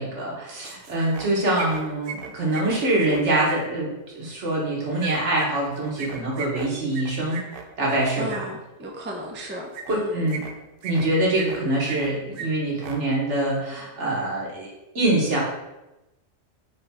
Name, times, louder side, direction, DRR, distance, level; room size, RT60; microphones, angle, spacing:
voice 1, 0.0-7.4 7.8-8.5 9.9-10.4 10.8-14.7 14.9-15.4, right 1 dB, 80° right, -4 dB, 1.5 m, -24 dB
sound 1, 0.6-1.3 1.5-3.6 5.0-8.4 9.7-9.9 10.3-11.0 11.3-12.1 12.3-12.5 12.7-13.0, right 6 dB, 60° right, 0.7 m, -36 dB
voice 2, 8.2-10.3, right 1 dB, 15° right, -1 dB, 0.4 m, -35 dB
5.1 x 2.3 x 4.1 m, 0.98 s
omnidirectional pair, 1.2 m